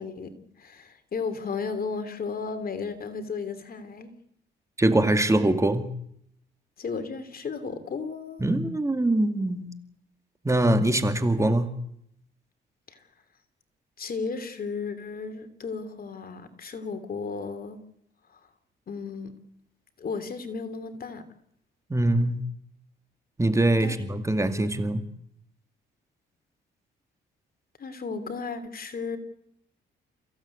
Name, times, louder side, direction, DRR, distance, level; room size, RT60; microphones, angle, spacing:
voice 1, 0.0-4.1 6.8-8.4 12.9-13.0 14.0-17.8 18.3-18.4 18.9-19.3 20.0-21.2 23.7-23.9 27.8-29.2, left 5 dB, 50° left, 9 dB, 3.1 m, -34 dB
voice 2, 4.8-5.9 8.4-9.8 10.4-11.8 21.9-22.4 23.4-25.0, right 1 dB, 15° right, 8 dB, 2.2 m, -23 dB
29.0 x 16.0 x 8.5 m, 0.73 s
cardioid pair, 90°, 20 cm